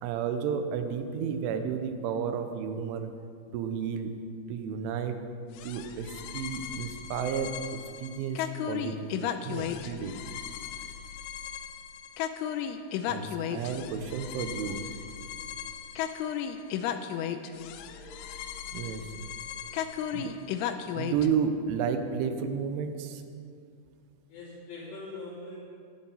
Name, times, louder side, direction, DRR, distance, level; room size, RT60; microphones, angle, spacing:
voice 1, 0.0-3.1 3.5-4.2 4.5-5.3 5.6-10.2 13.1-14.8 18.7-19.1 20.1-20.4 20.9-23.2, right 6 dB, 80° right, 7 dB, 3.2 m, -32 dB
sound 1, 5.6-21.3, left 9 dB, 85° left, 3.0 m, -35 dB
voice 2, 17.8-18.3 24.3-25.6, left 2 dB, 65° left, -12 dB, 5.1 m, -43 dB
19.0 x 10.5 x 4.0 m, 2.3 s
omnidirectional pair, 5.7 m